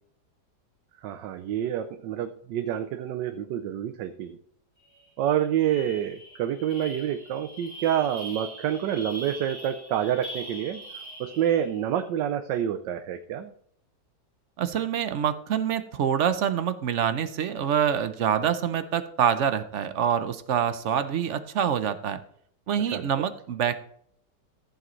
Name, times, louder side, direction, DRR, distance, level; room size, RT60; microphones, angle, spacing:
voice 1, 1.0-4.4 5.2-10.8 11.2-13.5 22.9-23.2, right 10 dB, 85° right, 9 dB, 1.3 m, -28 dB
sound 1, 4.9-5.1 5.4-11.8, right 1 dB, 65° left, 5.0 m, -42 dB
voice 2, 14.6-22.2 22.7-23.8, right 8 dB, 60° right, 11 dB, 0.8 m, -26 dB
14.5 x 7.5 x 3.1 m, 0.65 s
omnidirectional pair, 1.9 m